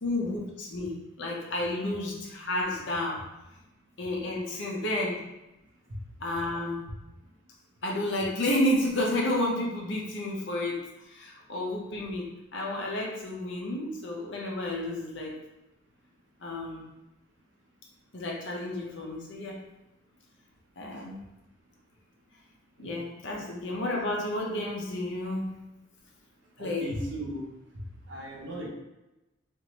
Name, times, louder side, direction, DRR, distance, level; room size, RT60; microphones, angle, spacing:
voice 1, 0.0-3.2 4.0-5.2 6.2-6.8 7.8-10.8 11.1-15.4 16.4-16.8 18.1-19.6 20.8-21.2 22.8-25.6 26.6-26.9, left 1 dB, 65° left, -2 dB, 0.7 m, -31 dB
voice 2, 26.6-27.5 28.1-28.7, equal, 65° right, -2 dB, 0.7 m, -36 dB
3.0 x 2.6 x 2.9 m, 0.98 s
head